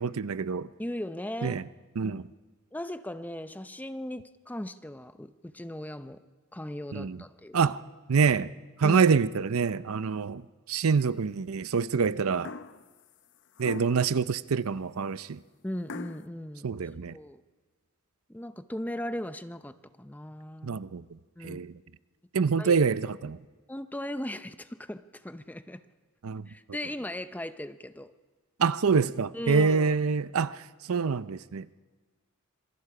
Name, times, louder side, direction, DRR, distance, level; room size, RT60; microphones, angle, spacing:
voice 1, 0.0-0.7 1.4-1.6 2.0-2.3 6.9-7.2 7.5-7.8 8.1-8.5 8.8-12.5 13.6-15.4 16.6-17.2 20.6-21.7 22.3-23.4 26.2-26.5 28.6-30.6 30.9-31.7, right 5 dB, 90° right, 16 dB, 0.6 m, -26 dB
voice 2, 0.8-1.6 2.0-2.2 2.7-6.2 6.5-7.6 8.8-9.0 15.6-16.7 17.1-17.4 18.3-20.8 21.4-21.6 22.6-22.8 23.7-25.8 26.5-28.1 29.3-29.9, left 1 dB, 10° left, 11 dB, 0.6 m, -38 dB
sound 1, 12.4-12.9 13.6-14.1 15.9-16.3, left 3 dB, 60° left, 0.7 m, -41 dB
26.0 x 23.0 x 4.9 m, 1.4 s
head